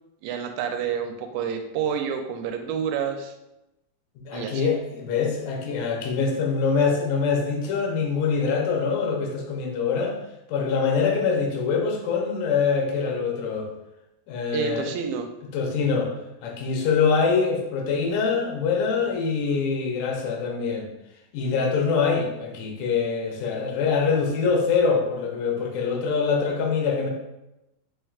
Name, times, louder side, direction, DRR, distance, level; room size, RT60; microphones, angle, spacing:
voice 1, 0.2-3.3 4.3-4.7 14.5-15.3, right 7 dB, 90° right, 5 dB, 2.3 m, -29 dB
voice 2, 4.2-10.2 10.5-13.7 14.3-14.9 15.5-16.1 16.4-20.9 21.3-27.1, left 5 dB, 80° left, 0 dB, 2.3 m, -24 dB
4.7 x 4.5 x 2.4 m, 0.92 s
omnidirectional pair, 3.9 m